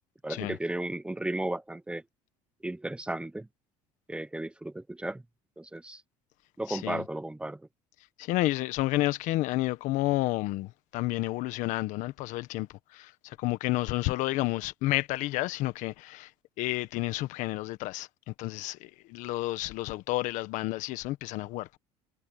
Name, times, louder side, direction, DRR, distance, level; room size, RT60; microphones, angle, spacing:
voice 1, 0.2-2.0 2.6-3.5 4.1-5.2 5.6-6.0 6.6-7.6, right 1 dB, 10° right, 1.0 m, -34 dB
voice 2, 6.7-7.0 8.2-16.3 16.6-21.8, left 18 dB, 70° left, 1.5 m, -31 dB
supercardioid pair, 100°, 13 cm